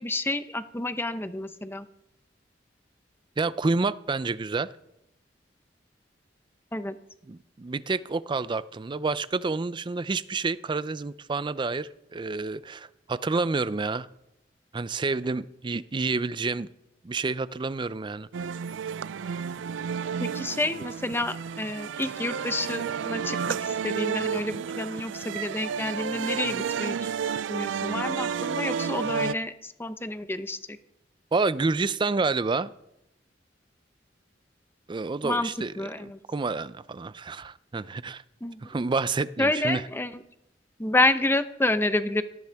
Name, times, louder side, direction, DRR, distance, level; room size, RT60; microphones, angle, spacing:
voice 1, 0.0-1.9 6.7-6.9 20.2-27.1 27.5-30.8 35.2-35.5 35.8-36.2 38.4-38.6 39.4-40.2 40.8-42.2, left 2 dB, 10° left, 11 dB, 0.7 m, -29 dB
voice 2, 3.4-4.7 7.3-14.1 14.7-16.7 17.0-18.3 31.3-32.7 34.9-35.7 36.3-38.2 38.6-39.8, right 3 dB, 25° right, 16 dB, 0.4 m, -29 dB
sound 1, 18.3-29.3, right 6 dB, 90° right, 0.4 m, -31 dB
18.0 x 13.5 x 3.5 m, 0.83 s
head